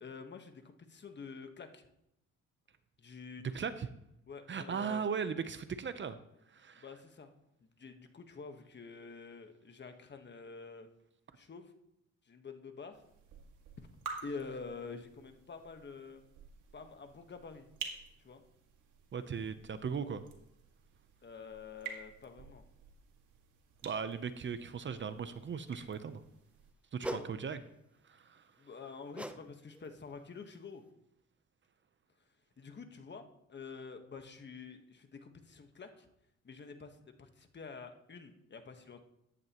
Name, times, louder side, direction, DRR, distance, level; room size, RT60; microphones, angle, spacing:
voice 1, 0.0-1.9 3.0-3.7 4.3-5.0 6.8-7.3 7.6-10.9 11.3-11.7 12.2-13.0 14.2-16.2 16.7-17.7 18.2-18.4 21.2-22.6 27.1-27.2 28.6-30.8 32.6-36.1 36.4-39.0, left 5 dB, 35° left, 6 dB, 1.3 m, -48 dB
voice 2, 3.5-3.9 4.5-6.2 6.5-6.8 19.1-20.2 23.8-26.2 26.9-27.6 28.1-28.4, right 6 dB, 40° right, 11 dB, 0.7 m, -38 dB
sound 1, 12.9-26.7, right 5 dB, 80° right, 2.1 m, -51 dB
sound 2, 27.0-27.3 29.1-29.4 29.7-30.0 30.5-30.6, right 1 dB, 5° right, 0.7 m, -40 dB
14.0 x 10.5 x 3.0 m, 0.80 s
cardioid pair, 90°, 30 cm